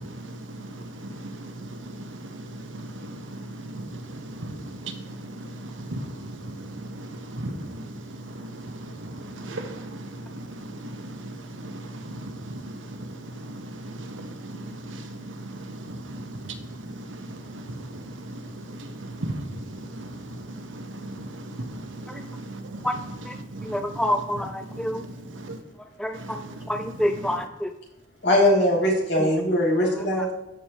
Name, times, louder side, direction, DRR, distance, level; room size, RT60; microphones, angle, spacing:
voice 1, 0.0-24.0 24.7-24.9 25.3-25.6 26.1-26.5 26.9-27.4, right 1 dB, 90° right, 1.1 m, -37 dB
voice 2, 23.7-25.0 26.0-26.4 26.7-27.7 29.2-29.3, equal, 5° left, 0.3 m, -27 dB
voice 3, 28.2-30.3, left 1 dB, 60° left, 2.9 m, -21 dB
13.0 x 5.0 x 3.0 m
head